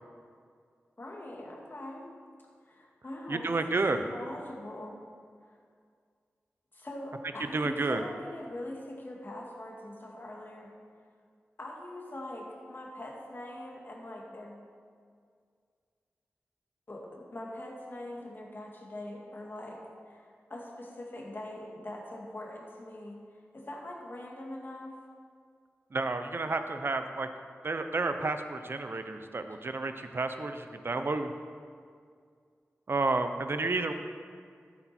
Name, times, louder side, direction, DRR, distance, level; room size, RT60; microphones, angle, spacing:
voice 1, 1.0-2.1 2.7-3.6 3.9-5.0 5.4-5.6 6.7-10.8 11.6-14.6 16.9-25.0, left 1 dB, 45° left, -2 dB, 2.3 m, -42 dB
voice 2, 3.3-4.0 7.5-8.0 25.9-27.3 27.6-31.3 32.9-33.9, right 3 dB, 55° right, 8 dB, 0.8 m, -31 dB
13.5 x 8.6 x 4.4 m, 2.1 s
wide cardioid pair, 75°, 5 cm